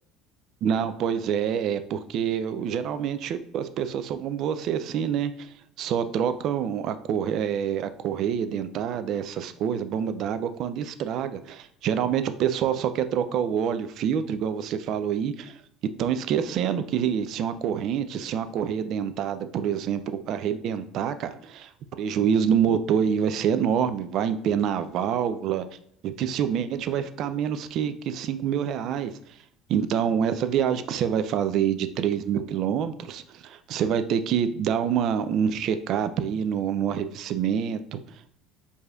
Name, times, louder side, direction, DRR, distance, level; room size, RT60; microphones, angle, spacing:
voice 1, 0.6-5.5 5.8-15.6 16.0-20.0 20.3-21.7 22.0-25.6 26.0-29.1 29.7-38.4, right 8 dB, 60° right, 11 dB, 0.3 m, -26 dB
4.8 x 2.7 x 2.3 m, 0.68 s
supercardioid pair, 85°, 0 cm